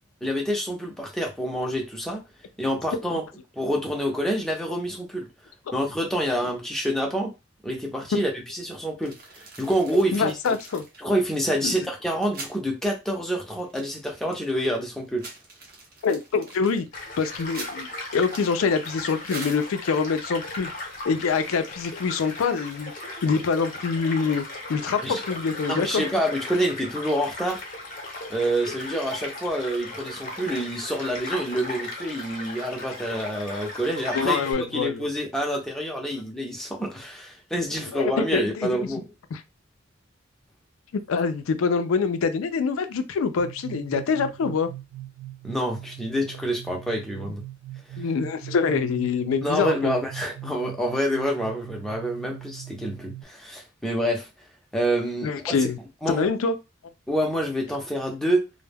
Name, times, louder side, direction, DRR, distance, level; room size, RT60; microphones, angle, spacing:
voice 1, 0.2-2.2 2.6-3.2 3.5-5.3 5.7-7.3 7.6-10.3 11.0-15.2 25.0-25.2 25.7-27.6 28.3-39.1 45.4-47.4 47.9-48.0 49.4-54.3 54.7-55.5 56.0-56.3 57.1-58.4, equal, ahead, 0.5 m, -27 dB
sound 1, 9.0-12.6 12.9-13.0 13.3-14.6 15.0-20.0, right 3 dB, 45° right, 0.7 m, -43 dB
voice 2, 10.1-10.8 11.6-11.7 16.0-16.9 17.2-20.7 21.1-22.9 23.2-24.4 24.7-26.0 34.1-35.1 37.9-38.8 39.3-39.4 40.9-44.7 48.0-50.0 55.2-55.8 56.1-56.6, left 5 dB, 80° left, 0.4 m, -25 dB
Child speech kid speaking / Stream / Car passing by, 16.9-34.5, left 2 dB, 40° left, 0.7 m, -37 dB
sound 2, 43.4-53.2, right 15 dB, 75° right, 0.4 m, -41 dB
2.2 x 2.1 x 3.3 m
head